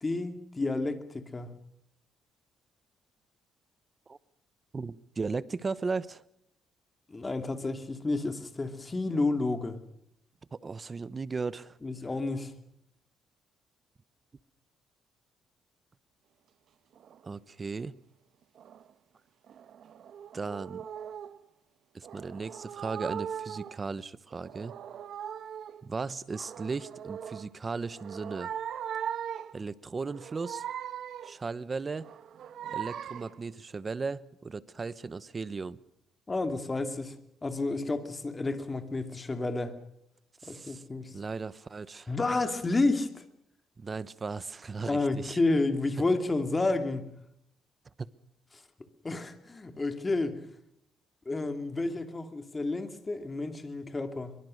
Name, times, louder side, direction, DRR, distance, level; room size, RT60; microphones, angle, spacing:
voice 1, 0.0-1.5 7.1-9.8 11.8-12.5 36.3-37.1 37.4-39.8 40.4-41.2 42.1-43.2 44.8-47.1 49.0-50.5 51.3-54.4, left 2 dB, 20° left, 8 dB, 2.7 m, -30 dB
voice 2, 4.7-6.2 10.5-11.8 17.2-18.0 20.3-20.8 21.9-24.7 25.8-28.5 29.5-30.6 31.2-32.1 32.7-35.8 40.4-40.8 41.1-42.1 43.8-45.4 48.0-48.1, right 4 dB, 25° right, 17 dB, 0.9 m, -36 dB
sound 1, 17.0-17.3 18.6-18.9 19.5-21.4 22.0-23.8 24.3-25.8 26.3-27.5 27.9-29.6 30.0-31.4 32.0-33.4, right 9 dB, 60° right, 1.2 m, -40 dB
23.5 x 23.5 x 6.5 m, 0.77 s
cardioid pair, 120°, 0 cm